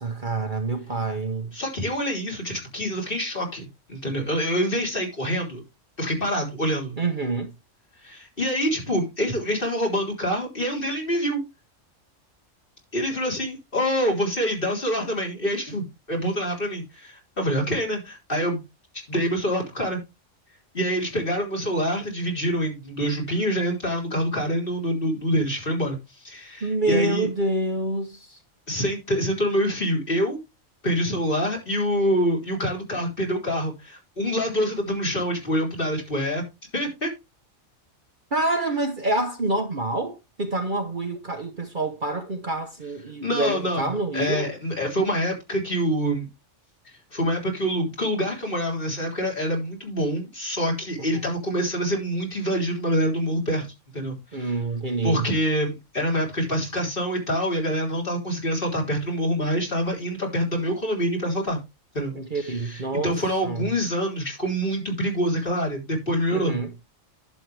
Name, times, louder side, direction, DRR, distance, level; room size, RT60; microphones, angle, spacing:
voice 1, 0.0-1.5 7.0-7.5 26.6-28.4 38.3-44.5 51.0-51.2 54.3-55.3 62.1-63.1 63.4-63.7 66.3-66.7, right 2 dB, 40° right, 1.1 m, -27 dB
voice 2, 1.5-5.6 6.0-7.0 8.0-11.4 12.9-18.6 19.1-20.0 20.7-26.0 26.2-27.3 28.7-30.4 30.8-36.4 36.7-37.1 43.2-46.3 47.1-53.7 53.9-54.5 55.0-61.6 61.9-66.6, equal, 45° left, 3.9 m, -26 dB
11.5 x 7.7 x 3.4 m
omnidirectional pair, 1.3 m